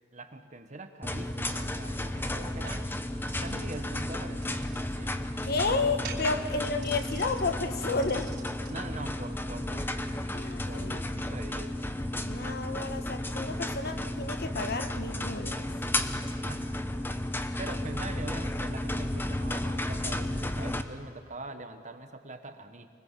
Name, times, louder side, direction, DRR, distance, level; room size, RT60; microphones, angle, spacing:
voice 1, 0.1-2.9 3.4-5.2 8.7-10.1 10.6-11.8 16.4-17.0 17.6-22.9, right 2 dB, 40° right, 7 dB, 1.4 m, -43 dB
sound 1, 1.0-20.8, left 1 dB, 10° left, 0.9 m, -33 dB
sound 2, 2.7-8.8, right 5 dB, 55° right, 4.3 m, -48 dB
voice 2, 5.4-8.3 10.3-11.0 12.2-15.7, left 3 dB, 55° left, 7 dB, 1.4 m, -31 dB
25.0 x 20.5 x 7.5 m, 2.1 s
head